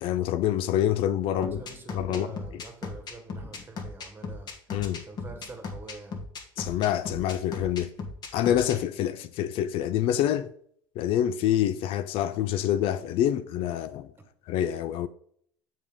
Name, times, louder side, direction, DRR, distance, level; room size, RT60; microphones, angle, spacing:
voice 1, 0.0-1.6 1.9-2.3 4.7-5.0 6.6-7.9 8.3-10.5 11.0-14.1 14.5-15.1, left 11 dB, 55° left, 0.4 m, -26 dB
voice 2, 1.3-4.5 4.9-6.2, right 3 dB, 20° right, 1.6 m, -45 dB
sound 1, 1.4-8.8, left 4 dB, 40° left, 1.4 m, -37 dB
7.2 x 5.2 x 3.6 m
supercardioid pair, 95°, 11 cm